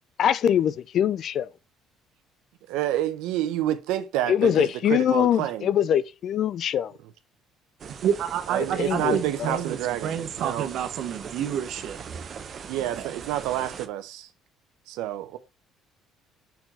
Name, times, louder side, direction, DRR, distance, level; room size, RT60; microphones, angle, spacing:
voice 1, 0.2-1.5 4.3-6.9 8.8-9.6, left 9 dB, 60° left, 0.4 m, -23 dB
voice 2, 2.7-5.7 8.5-10.7 12.7-14.3 14.9-15.4, right 13 dB, 80° right, 0.8 m, -29 dB
sound 1, 7.8-13.9, right 6 dB, 45° right, 0.8 m, -40 dB
voice 3, 8.0-12.0 13.0-13.1, right 9 dB, 65° right, 1.2 m, -29 dB
5.7 x 4.5 x 4.4 m
supercardioid pair, 85°, 0 cm